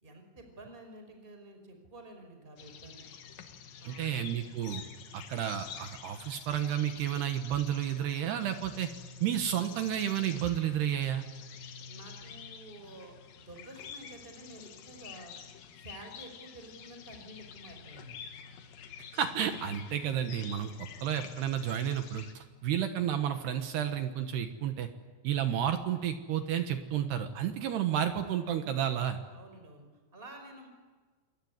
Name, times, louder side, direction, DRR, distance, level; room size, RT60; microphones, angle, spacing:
voice 1, 0.0-3.0 3.8-4.1 11.9-15.4 15.8-18.2 29.3-29.9 30.1-30.7, right 1 dB, 10° right, 5 dB, 4.7 m, -50 dB
sound 1, 2.6-22.3, left 7 dB, 60° left, 2.5 m, -48 dB
voice 2, 3.8-4.8 5.1-8.9 9.2-11.3 19.1-20.7 21.0-24.9 25.2-29.2, right 10 dB, 65° right, 7 dB, 2.9 m, -31 dB
27.5 x 22.0 x 9.6 m, 1.4 s
omnidirectional pair, 5.9 m